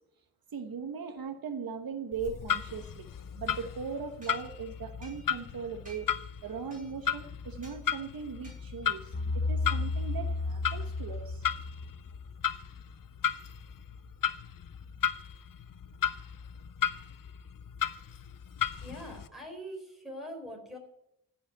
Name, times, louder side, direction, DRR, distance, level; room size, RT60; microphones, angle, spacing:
voice 1, 0.5-3.1 3.3-6.1 6.4-11.5, right 6 dB, 70° right, 7 dB, 1.1 m, -39 dB
Clock, 2.1-19.3, left 9 dB, 60° left, 0.7 m, -35 dB
sound 1, 4.2-5.5 5.8-6.3 6.7-7.1 7.6-7.8 8.4-8.9, right 1 dB, 20° right, 4.7 m, -55 dB
sound 2, 9.1-12.2, left 3 dB, 25° left, 0.8 m, -33 dB
voice 2, 18.8-20.8, equal, ahead, 0 dB, 4.2 m, -43 dB
15.0 x 5.7 x 9.4 m, 0.79 s
wide cardioid pair, 130°, 37 cm